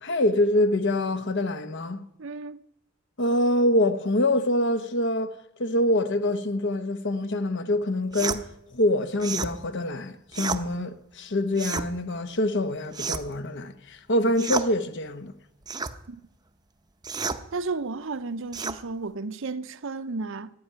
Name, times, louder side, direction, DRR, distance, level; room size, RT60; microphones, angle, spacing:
voice 1, 0.0-2.0 3.2-5.3 5.6-8.5 8.7-15.3, left 1 dB, 55° left, 1.0 m, -25 dB
voice 2, 2.2-2.6 16.1-16.2 17.5-20.5, right 3 dB, 60° right, 0.7 m, -33 dB
sound 1, 8.1-8.4 9.2-9.5 10.3-10.6 11.5-11.9 12.9-13.4 14.4-14.7 15.7-16.0 17.0-17.4 18.5-18.8, right 4 dB, 20° right, 0.7 m, -30 dB
14.5 x 9.1 x 9.7 m
head